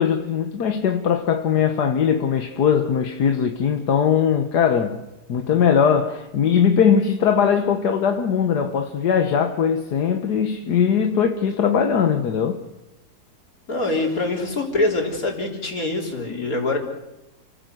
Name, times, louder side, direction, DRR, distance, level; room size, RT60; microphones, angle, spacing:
voice 1, 0.0-5.0 5.3-12.6, left 7 dB, 80° left, 1.8 m, -20 dB
voice 2, 13.7-16.8, left 2 dB, 60° left, 4.6 m, -24 dB
29.5 x 17.0 x 7.9 m
omnidirectional pair, 1.7 m